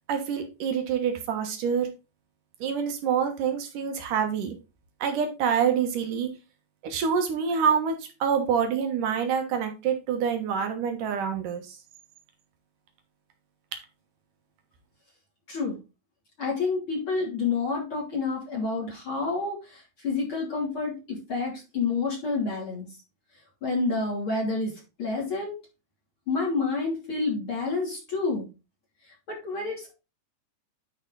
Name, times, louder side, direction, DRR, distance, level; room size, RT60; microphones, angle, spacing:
voice 1, 0.1-1.9 2.6-4.5 5.0-6.3 6.8-11.8, right 7 dB, 65° right, 5 dB, 2.5 m, -26 dB
voice 2, 16.4-22.9 23.6-25.6 26.3-28.5 29.3-29.9, left 4 dB, 35° left, -3 dB, 3.3 m, -29 dB
11.0 x 5.2 x 4.0 m, 0.29 s
omnidirectional pair, 4.9 m